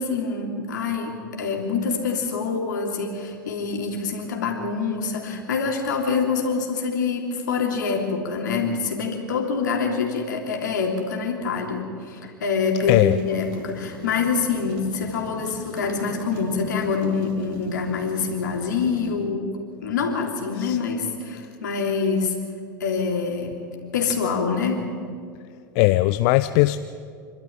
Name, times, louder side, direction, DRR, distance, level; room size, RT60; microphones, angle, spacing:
voice 1, 0.0-19.5 19.8-22.3 22.8-23.6 23.9-24.9, left 5 dB, 65° left, 2 dB, 3.2 m, -25 dB
sound 1, 12.8-19.1, right 4 dB, 45° right, 2.8 m, -41 dB
voice 2, 25.7-26.8, left 18 dB, 45° left, 13 dB, 0.6 m, -19 dB
27.0 x 12.5 x 9.2 m, 2.3 s
figure-of-eight pair, 80°, 11 cm